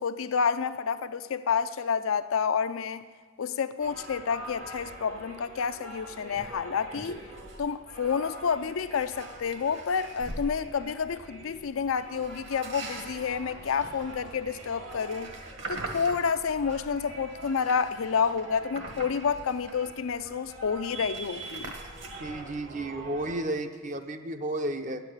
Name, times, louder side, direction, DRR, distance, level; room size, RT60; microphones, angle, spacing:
voice 1, 0.0-3.0 3.4-7.2 7.6-15.3 15.7-21.7, left 6 dB, 75° left, 0.5 m, -29 dB
sound 1, 3.8-23.4, right 2 dB, 75° right, 2.4 m, -45 dB
sound 2, 6.3-6.5 6.9-7.7 7.9-8.2 8.7-10.5 12.1-16.9 17.3-20.0 20.3-20.4 20.6-22.6, right 2 dB, 60° right, 1.6 m, -43 dB
voice 2, 22.2-25.0, right 1 dB, 35° right, 0.6 m, -32 dB
9.7 x 8.1 x 8.8 m
head